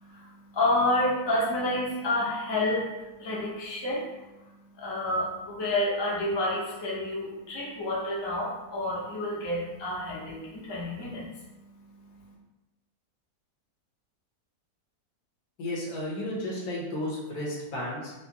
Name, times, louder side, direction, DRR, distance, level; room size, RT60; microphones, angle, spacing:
voice 1, 0.0-12.3, left 1 dB, 30° left, -5 dB, 0.5 m, -30 dB
voice 2, 15.6-18.1, left 1 dB, 70° left, -4 dB, 1.4 m, -33 dB
4.8 x 2.0 x 2.8 m, 1.0 s
omnidirectional pair, 1.7 m